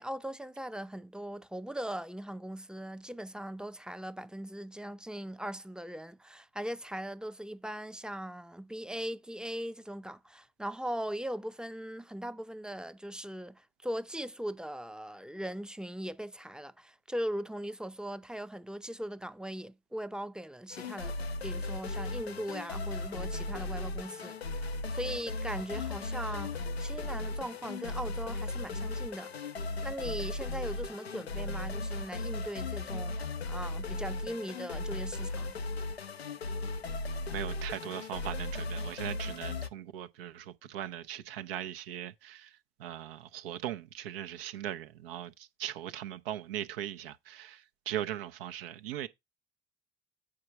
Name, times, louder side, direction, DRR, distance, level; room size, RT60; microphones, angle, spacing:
voice 1, 0.0-29.3 29.8-35.6, equal, 5° right, 0.6 m, -39 dB
sound 1, 20.7-39.7, left 2 dB, 90° left, 0.5 m, -36 dB
voice 2, 37.3-49.1, right 11 dB, 70° right, 0.8 m, -39 dB
8.6 x 4.8 x 4.7 m
figure-of-eight pair, 55°, 30 cm